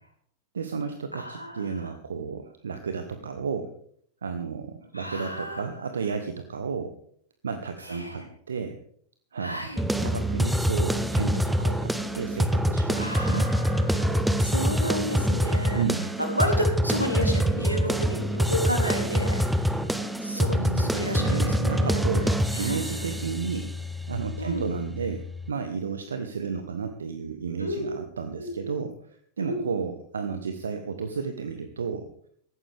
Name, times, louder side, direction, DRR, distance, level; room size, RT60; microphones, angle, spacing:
voice 1, 0.5-3.7 4.2-6.9 7.4-8.8 9.3-13.5 15.7-16.1 20.3-23.7 24.1-28.9 29.4-32.1, right 5 dB, 70° right, 8 dB, 1.1 m, -32 dB
voice 2, 1.1-1.9 4.9-5.6 7.8-8.3 9.4-9.8 13.0-15.8 16.2-19.4 20.2-22.0 22.5-23.1 24.4-24.6 27.6-27.9 28.4-28.7 29.4-29.7, equal, 90° right, 3 dB, 3.2 m, -32 dB
sound 1, 9.8-25.5, equal, 5° right, 1.1 m, -26 dB
17.5 x 14.5 x 3.5 m, 0.62 s
figure-of-eight pair, 90°, 0 cm